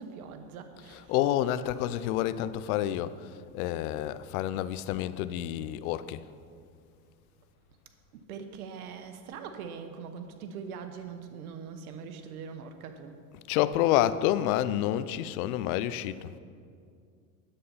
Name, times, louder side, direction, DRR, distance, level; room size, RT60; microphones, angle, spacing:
voice 1, 0.0-1.3 8.1-13.2, right 6 dB, 90° right, 8 dB, 1.1 m, -42 dB
voice 2, 0.8-6.2 13.3-16.3, left 12 dB, 75° left, 15 dB, 0.6 m, -29 dB
10.0 x 8.2 x 5.6 m, 2.3 s
supercardioid pair, 105°, 43 cm